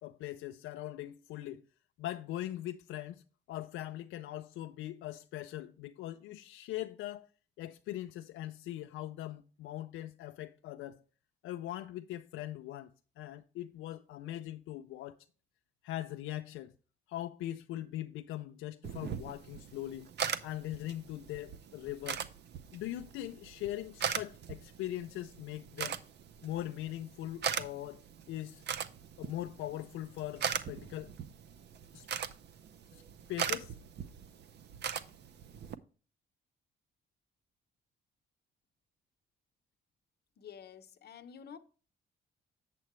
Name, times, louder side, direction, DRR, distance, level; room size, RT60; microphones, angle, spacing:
voice 1, 0.0-1.6 2.0-3.2 3.5-7.3 7.6-11.0 11.4-15.2 15.8-16.7 17.1-20.1 20.4-22.2 22.7-26.0 26.4-28.0 28.3-28.6 29.2-31.1 31.9-32.1 32.9-33.0 33.3-33.8, left 13 dB, 85° left, 0.4 m, -41 dB
sound 1, 18.8-35.8, right 8 dB, 60° right, 0.6 m, -40 dB
voice 2, 40.4-41.6, left 8 dB, 55° left, 0.8 m, -50 dB
7.6 x 7.4 x 3.0 m
cardioid pair, 90°, 20 cm